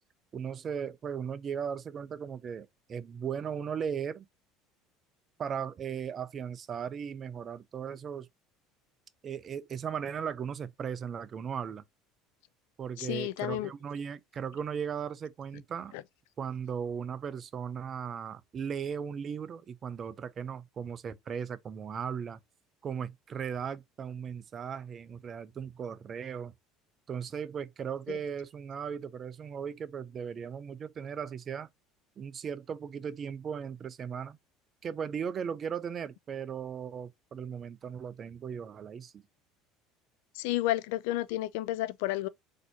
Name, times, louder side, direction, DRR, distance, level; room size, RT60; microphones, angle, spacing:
voice 1, 0.3-4.3 5.4-8.3 9.2-11.8 12.8-15.9 16.4-22.4 22.8-26.5 27.1-31.7 32.2-34.4 34.8-39.1, right 7 dB, 40° right, 0.4 m, -37 dB
voice 2, 13.0-13.7 15.9-16.0 28.1-28.2 40.3-42.3, left 15 dB, 65° left, 0.3 m, -31 dB
4.0 x 2.8 x 2.8 m
hypercardioid pair, 70°, 0 cm